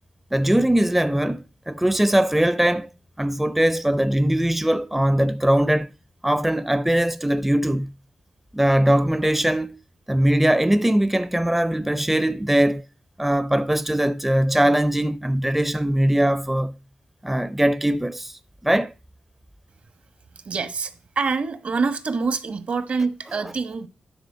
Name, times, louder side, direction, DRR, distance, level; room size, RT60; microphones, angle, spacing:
voice 1, 0.3-2.9 3.2-5.9 6.2-7.9 8.5-9.8 10.1-12.8 13.2-16.7 17.2-18.9, right 1 dB, 10° right, 0.5 m, -21 dB
voice 2, 20.4-23.9, right 4 dB, 65° right, 1.2 m, -26 dB
9.8 x 3.8 x 6.1 m
supercardioid pair, 45°, 3 cm